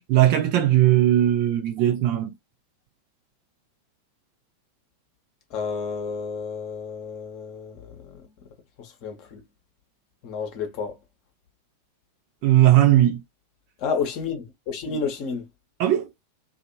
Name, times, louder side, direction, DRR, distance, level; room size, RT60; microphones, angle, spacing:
voice 1, 0.0-2.3 12.4-13.2 15.8-16.1, right 13 dB, 45° right, 0.7 m, -18 dB
voice 2, 5.5-8.2 8.8-9.4 10.2-10.9 13.8-15.5, left 5 dB, 40° left, 1.0 m, -31 dB
2.6 x 2.5 x 2.6 m
figure-of-eight pair, 90°, 0 cm